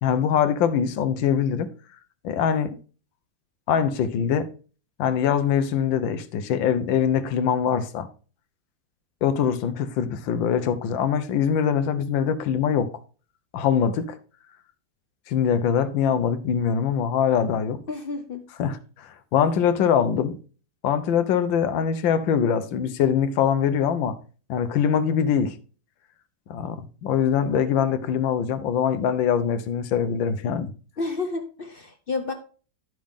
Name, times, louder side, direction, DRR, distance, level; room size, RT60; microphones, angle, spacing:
voice 1, 0.0-1.7 2.2-2.8 3.7-4.5 5.0-8.1 9.2-12.9 13.5-14.2 15.3-17.8 18.6-20.4 20.8-24.2 24.5-25.6 26.5-30.7, left 8 dB, 80° left, 1.5 m, -23 dB
voice 2, 17.9-18.4 31.0-32.3, left 3 dB, 50° left, 0.6 m, -30 dB
10.5 x 6.3 x 3.6 m
omnidirectional pair, 2.0 m